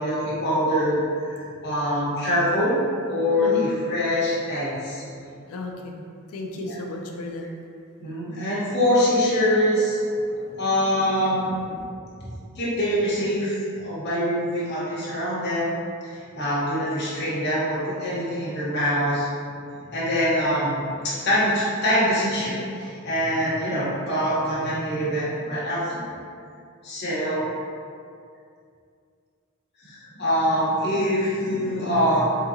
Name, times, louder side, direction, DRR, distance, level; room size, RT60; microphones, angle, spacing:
voice 1, 0.0-2.7 3.1-5.1 6.6-6.7 8.0-10.0 10.4-11.8 12.2-15.8 16.1-19.3 19.9-20.8 21.0-26.0 26.8-27.4 29.8-32.2, equal, 50° left, -9 dB, 1.1 m, -24 dB
voice 2, 3.4-3.7 5.5-6.0 6.3-7.5 31.7-31.8, left 2 dB, 80° left, 1 dB, 0.4 m, -33 dB
3.9 x 2.7 x 2.7 m, 2.3 s
head